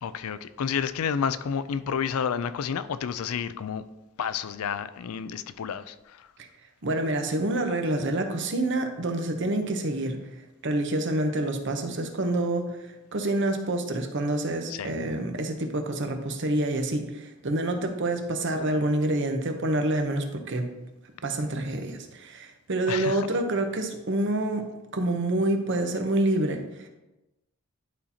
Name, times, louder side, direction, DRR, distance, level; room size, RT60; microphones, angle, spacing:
voice 1, 0.0-3.8 4.2-6.3 14.7-14.9 22.9-23.3, left 7 dB, 80° left, 0.4 m, -30 dB
voice 2, 6.8-10.3 10.6-20.7 21.2-26.9, right 1 dB, 55° right, 0.8 m, -27 dB
11.0 x 4.2 x 2.8 m
head